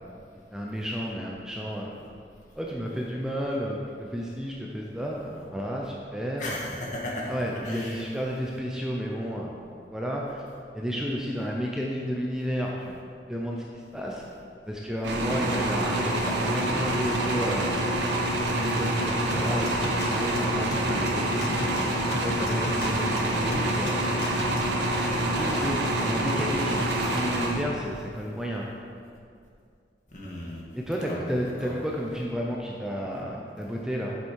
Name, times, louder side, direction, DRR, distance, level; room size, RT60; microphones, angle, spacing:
voice 1, 0.5-1.9 2.6-6.6 7.3-9.6 9.9-10.4 10.7-13.0 13.3-14.2 14.7-17.7 18.5-21.5 22.2-23.9 24.6-24.7 25.2-28.6 30.7-34.2, equal, 5° right, -3 dB, 0.6 m, -32 dB
voice 2, 6.4-7.3 7.6-8.0 23.2-23.4 25.3-25.6 30.1-30.6 31.0-31.2 31.6-31.7, left 1 dB, 45° left, -4 dB, 1.7 m, -36 dB
sound 1, 15.0-28.0, right 1 dB, 85° right, 1.2 m, -27 dB
sound 2, 19.3-24.8, left 2 dB, 70° left, 0.9 m, -36 dB
8.3 x 7.1 x 4.6 m, 2.3 s
head